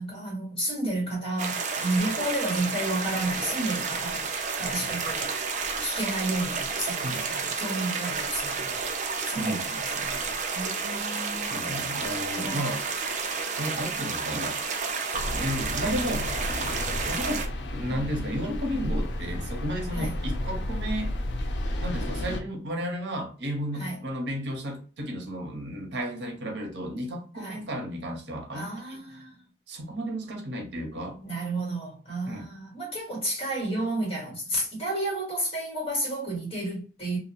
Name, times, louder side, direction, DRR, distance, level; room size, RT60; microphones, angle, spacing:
voice 1, 0.0-4.2 4.6-8.8 9.1-11.5 12.3-12.8 19.9-20.1 23.8-24.0 27.4-27.6 28.5-29.4 31.2-37.2, right 1 dB, 35° left, 1.4 m, -32 dB
sound 1, 1.4-17.5, right 5 dB, 45° right, 0.4 m, -31 dB
voice 2, 11.4-12.8 13.6-14.6 15.3-16.3 17.1-17.4 17.7-21.1 21.8-29.2 29.7-31.2 32.3-32.5, equal, 80° right, 0.7 m, -33 dB
sound 2, 15.1-22.4, left 1 dB, 80° left, 0.4 m, -32 dB
2.4 x 2.0 x 2.7 m
head